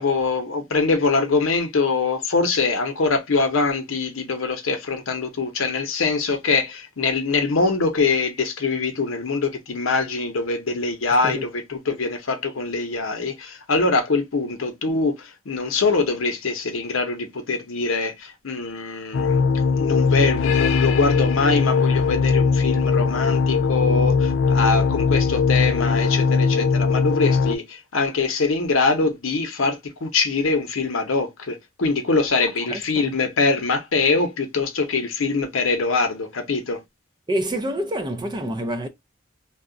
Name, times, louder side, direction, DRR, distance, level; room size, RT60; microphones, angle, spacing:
voice 1, 0.0-19.4 19.8-36.8, left 4 dB, 85° left, 0.7 m, -23 dB
sound 1, 19.1-27.6, left 5 dB, 65° left, 0.3 m, -20 dB
voice 2, 32.7-33.1 37.3-38.9, right 1 dB, 20° right, 0.4 m, -27 dB
2.3 x 2.1 x 3.6 m
head